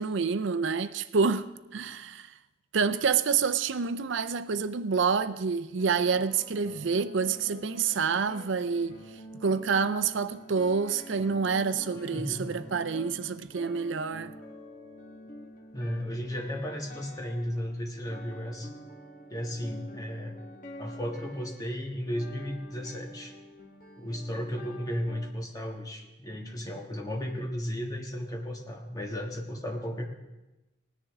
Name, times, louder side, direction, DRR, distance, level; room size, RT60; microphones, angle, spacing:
voice 1, 0.0-2.3 2.7-9.0 9.4-14.3, right 5 dB, 70° right, 0.5 m, -28 dB
sound 1, 5.8-25.3, equal, 45° left, 1.4 m, -47 dB
voice 2, 12.1-12.5 15.7-18.7 19.3-20.3 20.8-23.3 24.0-30.1, equal, 20° left, 1.4 m, -34 dB
19.0 x 10.0 x 3.6 m
head